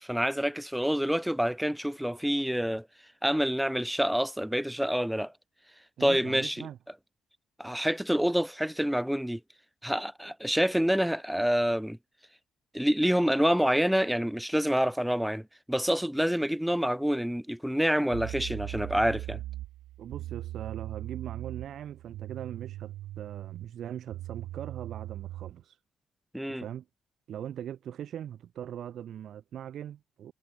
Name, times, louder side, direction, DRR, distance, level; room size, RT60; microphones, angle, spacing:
voice 1, 0.0-2.9 3.2-5.3 6.0-6.7 7.6-9.4 9.8-12.0 12.7-19.4 26.3-26.6, equal, ahead, 1.3 m, -27 dB
voice 2, 6.0-6.8 20.0-25.8 26.5-26.8 27.3-30.3, right 10 dB, 70° right, 3.3 m, -40 dB
sound 1, 17.6-17.7 18.1-25.6, right 15 dB, 90° right, 0.9 m, -40 dB
cardioid pair, 90°, 0 cm